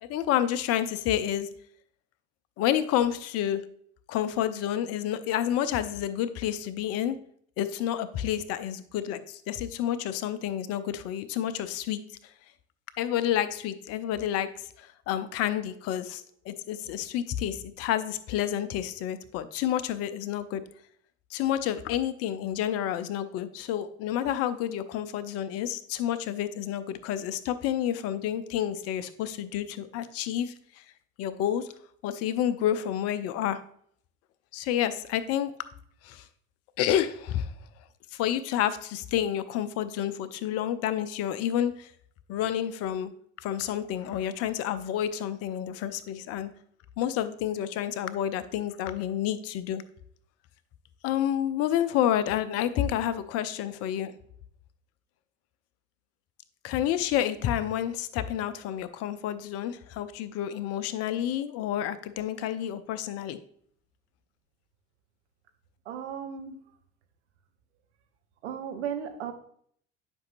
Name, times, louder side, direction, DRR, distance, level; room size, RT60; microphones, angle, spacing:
voice 1, 0.0-1.5 2.6-3.6 4.1-7.2 7.6-12.0 13.0-14.5 14.8-20.6 21.3-30.5 31.2-31.7 32.0-33.6 34.5-35.5 36.0-36.2 36.8-37.5 38.1-41.9 42.3-43.1 43.4-46.5 47.0-49.8 51.0-54.1 56.6-63.4, left 11 dB, 45° left, 14 dB, 0.6 m, -29 dB
voice 2, 65.8-66.6 68.4-69.3, right 8 dB, 70° right, 5 dB, 1.0 m, -35 dB
10.5 x 5.4 x 2.6 m, 0.63 s
figure-of-eight pair, 65°, 36 cm